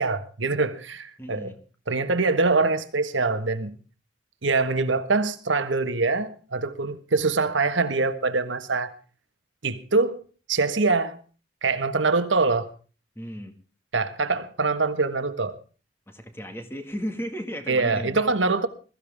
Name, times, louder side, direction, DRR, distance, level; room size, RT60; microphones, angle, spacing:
voice 1, 0.0-1.6 1.9-3.8 4.4-8.9 9.6-10.2 10.5-11.2 11.6-12.7 13.9-15.6 17.7-18.7, right 3 dB, 85° right, 1.5 m, -24 dB
voice 2, 1.2-1.6 13.2-13.5 16.1-18.3, equal, 10° left, 1.9 m, -35 dB
21.5 x 14.5 x 3.6 m
head